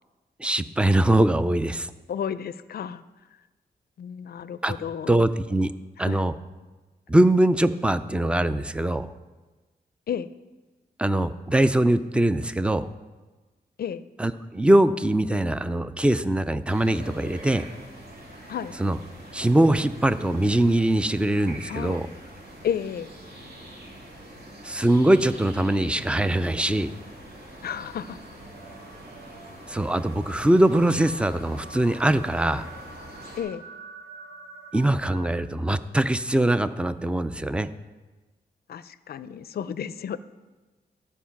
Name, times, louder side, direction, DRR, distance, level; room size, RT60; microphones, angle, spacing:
voice 1, 0.4-1.9 4.6-4.7 5.1-5.7 6.0-6.3 7.1-9.1 11.0-12.9 14.2-17.6 18.8-19.0 19.3-22.1 24.6-26.9 29.7-32.7 34.7-37.7, right 1 dB, 5° right, 13 dB, 0.4 m, -22 dB
voice 2, 2.1-3.0 4.0-5.2 6.0-6.2 10.1-10.3 13.8-14.0 18.5-18.7 21.7-22.0 22.6-23.1 27.6-28.2 33.4-33.6 38.7-40.2, left 8 dB, 65° left, 15 dB, 0.4 m, -32 dB
sound 1, 16.6-33.4, right 1 dB, 60° right, 2.7 m, -44 dB
sound 2, 28.5-35.3, right 3 dB, 80° right, 1.3 m, -47 dB
13.5 x 4.6 x 5.8 m, 1.2 s
cardioid pair, 95°, 17 cm